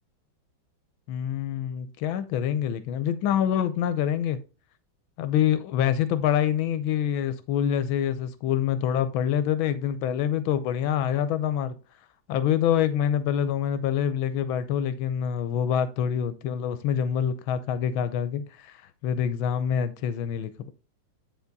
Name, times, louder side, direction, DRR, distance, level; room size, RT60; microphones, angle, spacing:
voice 1, 1.1-4.4 5.2-11.7 12.3-20.7, left 9 dB, 80° left, 1.4 m, -26 dB
9.5 x 4.1 x 3.9 m
omnidirectional pair, 2.2 m